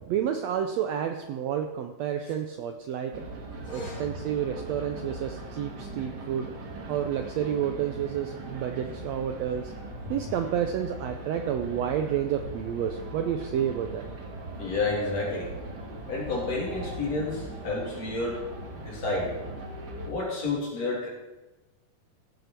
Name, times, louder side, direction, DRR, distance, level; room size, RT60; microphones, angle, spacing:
voice 1, 0.0-3.1 3.7-6.5 6.9-9.7 10.1-14.0, right 9 dB, 80° right, 6 dB, 1.5 m, -30 dB
sound 1, 3.1-20.1, right 1 dB, 45° right, 1.4 m, -40 dB
voice 2, 3.7-4.0 14.6-15.5 16.1-18.4 18.9-19.3 20.0-21.1, left 3 dB, 55° left, -4 dB, 4.0 m, -30 dB
16.0 x 8.0 x 4.4 m, 1.1 s
omnidirectional pair, 3.7 m